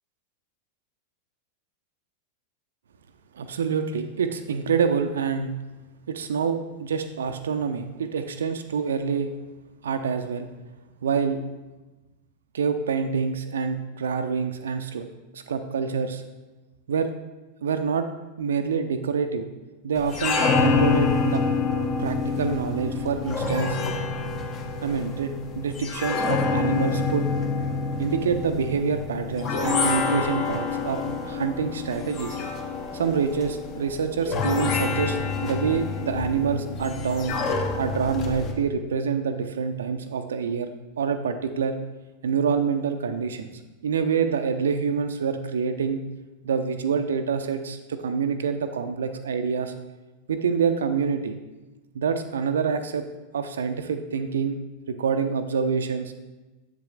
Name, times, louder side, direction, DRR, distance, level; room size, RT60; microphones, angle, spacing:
voice 1, 3.3-5.5 6.1-9.3 9.8-10.5 11.0-11.4 12.5-15.0 15.3-16.2 16.9-17.1 17.6-18.1 18.4-19.5 19.8-21.4 22.0-23.8 24.8-27.3 28.0-32.4 32.9-37.3 37.8-40.7 41.0-41.8 42.2-43.5 43.8-46.0 46.4-49.7 50.3-51.4 51.9-53.1 53.3-54.6 54.9-56.2, right 6 dB, 65° right, 7 dB, 0.4 m, -26 dB
sound 1, 20.0-38.5, left 4 dB, 35° left, 0.9 m, -27 dB
7.4 x 7.2 x 2.4 m, 1.1 s
figure-of-eight pair, 90°, 0 cm